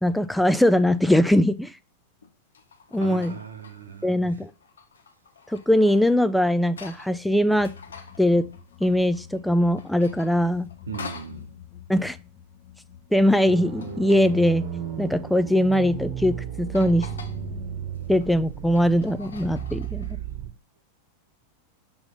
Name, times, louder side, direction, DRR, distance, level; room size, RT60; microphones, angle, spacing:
voice 1, 0.0-1.8 2.9-3.4 4.0-4.5 5.5-7.7 8.2-8.4 8.8-10.7 11.9-12.2 13.1-14.6 15.0-17.1 18.1-20.0, left 1 dB, ahead, 0.4 m, -21 dB
sound 1, 0.8-1.0 2.2-4.0 4.5-7.2 7.5-9.4 9.7-11.4 13.4-14.5 15.3-15.9 16.3-16.4 16.7-17.4 17.9-20.1, left 5 dB, 70° left, 0.8 m, -46 dB
voice 2, 3.0-4.4 10.9-11.6, right 5 dB, 70° right, 1.0 m, -38 dB
sound 2, 7.6-17.6, left 9 dB, 40° left, 0.8 m, -47 dB
sound 3, 13.5-20.5, right 9 dB, 45° right, 1.1 m, -34 dB
5.7 x 3.8 x 5.6 m
figure-of-eight pair, 90°, 0 cm